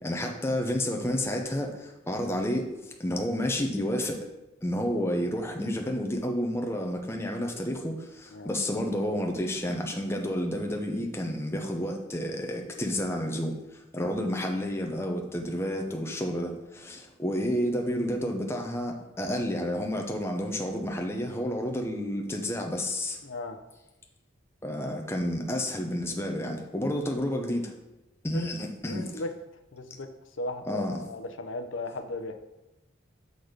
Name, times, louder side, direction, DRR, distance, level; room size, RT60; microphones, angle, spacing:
voice 1, 0.0-4.3 4.6-23.2 24.6-27.7 28.2-29.2 30.7-31.0, equal, 15° left, 1 dB, 0.7 m, -30 dB
voice 2, 23.2-23.6 26.7-26.9 28.3-28.5 28.9-29.3 29.7-30.1 30.4-32.3, left 2 dB, 80° left, 7 dB, 0.7 m, -36 dB
6.3 x 4.0 x 5.0 m, 0.99 s
head